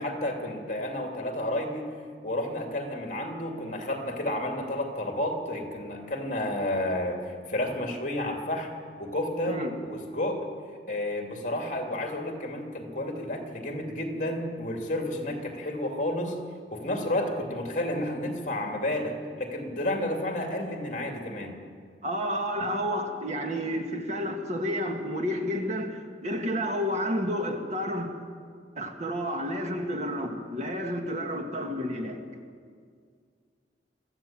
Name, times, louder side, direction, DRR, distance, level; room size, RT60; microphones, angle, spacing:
voice 1, 0.0-1.9 2.2-8.7 9.0-10.4 10.9-16.4 16.7-21.5, left 1 dB, 45° left, 2 dB, 2.7 m, -31 dB
voice 2, 22.0-28.1 28.8-32.2, equal, 40° right, 3 dB, 1.8 m, -30 dB
23.5 x 14.5 x 7.5 m, 2.1 s
head